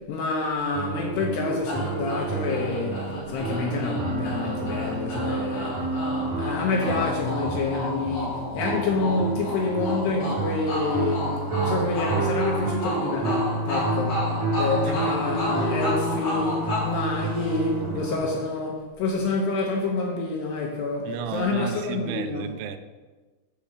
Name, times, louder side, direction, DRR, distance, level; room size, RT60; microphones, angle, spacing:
voice 1, 0.0-5.8 6.2-14.2 14.6-22.5, left 3 dB, 75° left, 2.6 m, -28 dB
sound 1, 0.7-18.1, right 2 dB, 50° right, 3.0 m, -29 dB
sound 2, 1.7-17.9, left 1 dB, 45° left, 4.6 m, -32 dB
voice 2, 14.8-15.3 18.0-18.1 21.0-22.8, right 9 dB, 80° right, 2.9 m, -34 dB
8.1 x 5.2 x 7.1 m
omnidirectional pair, 5.7 m